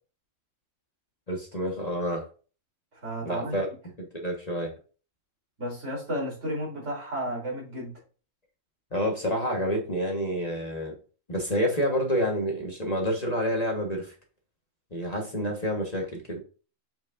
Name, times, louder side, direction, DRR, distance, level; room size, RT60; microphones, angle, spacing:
voice 1, 1.3-2.3 3.2-3.7 4.0-4.7 8.9-10.9 11.3-14.1 14.9-16.4, equal, 30° left, 1.4 m, -28 dB
voice 2, 3.0-3.6 5.6-7.9, equal, 60° right, 3.7 m, -32 dB
7.3 x 6.2 x 2.5 m
omnidirectional pair, 1.4 m